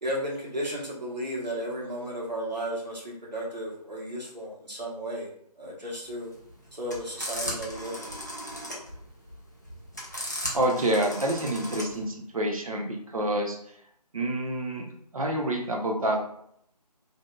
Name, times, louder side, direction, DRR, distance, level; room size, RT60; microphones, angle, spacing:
voice 1, 0.0-5.3 5.6-6.3 6.7-8.1, equal, 90° right, -5 dB, 1.1 m, -34 dB
sound 1, 6.1-12.0, equal, 25° left, 0.4 m, -37 dB
voice 2, 10.5-13.6 14.1-14.9 15.1-16.2, right 1 dB, 55° right, 2 dB, 0.6 m, -27 dB
2.6 x 2.4 x 2.2 m, 0.70 s
figure-of-eight pair, 155°, 21 cm